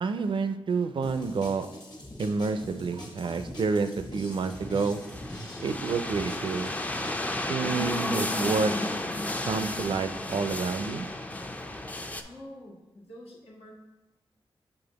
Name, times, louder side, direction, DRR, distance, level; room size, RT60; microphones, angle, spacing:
voice 1, 0.0-1.7 2.2-5.0 5.6-6.7 7.5-8.7 9.5-11.1, right 4 dB, 60° right, 10 dB, 0.4 m, -29 dB
sound 1, 1.0-7.2, left 1 dB, 45° left, 1.3 m, -43 dB
sound 2, 4.4-12.2, left 1 dB, 15° left, 0.4 m, -33 dB
voice 2, 11.9-13.7, left 1 dB, 85° left, -5 dB, 1.5 m, -47 dB
6.8 x 3.4 x 4.0 m, 1.0 s
wide cardioid pair, 95°, 10 cm